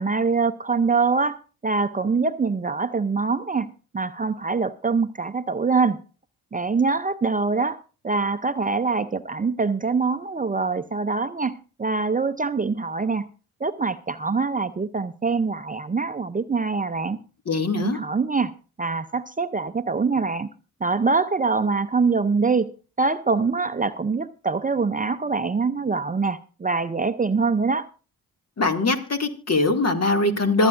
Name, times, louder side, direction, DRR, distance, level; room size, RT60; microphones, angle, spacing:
voice 1, 0.0-1.4 1.6-3.7 3.9-6.0 6.5-7.8 8.0-11.5 11.8-13.3 13.6-17.2 17.8-18.5 18.8-20.5 20.8-22.7 23.0-27.9, right 4 dB, 25° right, 12 dB, 0.6 m, -24 dB
voice 2, 17.5-18.0 28.6-30.7, left 2 dB, 45° left, 5 dB, 2.3 m, -22 dB
26.5 x 8.9 x 2.6 m, 0.35 s
supercardioid pair, 45°, 35 cm